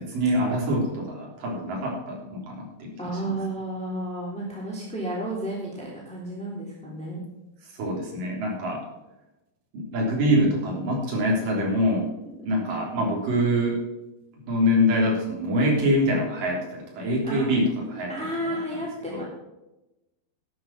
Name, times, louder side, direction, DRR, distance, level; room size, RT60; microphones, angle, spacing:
voice 1, 0.0-2.9 7.8-8.8 9.7-12.1 12.4-13.8 14.3-18.1 19.1-19.2, equal, 65° right, -2 dB, 5.1 m, -24 dB
voice 2, 3.0-7.2 12.4-12.5 17.2-19.2, right 1 dB, ahead, -5 dB, 2.6 m, -32 dB
12.0 x 8.4 x 5.8 m, 0.97 s
omnidirectional pair, 4.3 m